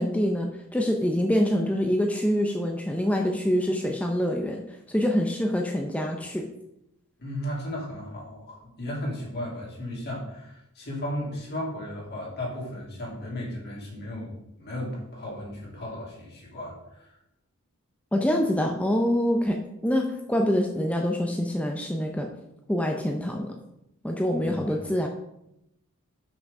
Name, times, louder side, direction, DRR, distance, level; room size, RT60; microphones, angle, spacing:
voice 1, 0.0-6.5 18.1-19.6 19.8-22.3 22.7-23.5 24.0-25.1, equal, 5° left, 2 dB, 0.5 m, -25 dB
voice 2, 7.2-14.3 14.6-17.1 24.3-24.8, left 1 dB, 50° left, -3 dB, 2.7 m, -35 dB
6.1 x 5.7 x 5.3 m, 0.84 s
head